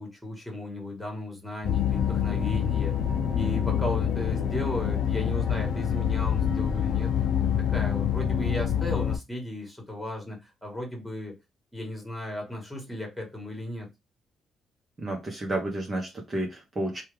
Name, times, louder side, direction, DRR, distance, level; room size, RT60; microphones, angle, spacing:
voice 1, 0.0-3.0 3.3-7.3 7.6-11.4 11.7-13.9, left 1 dB, 5° left, 1.8 m, -35 dB
sound 1, 1.6-9.2, left 9 dB, 65° left, 0.5 m, -26 dB
voice 2, 15.0-17.0, right 1 dB, 30° right, 1.1 m, -31 dB
3.0 x 2.4 x 3.3 m
cardioid pair, 90°, 0 cm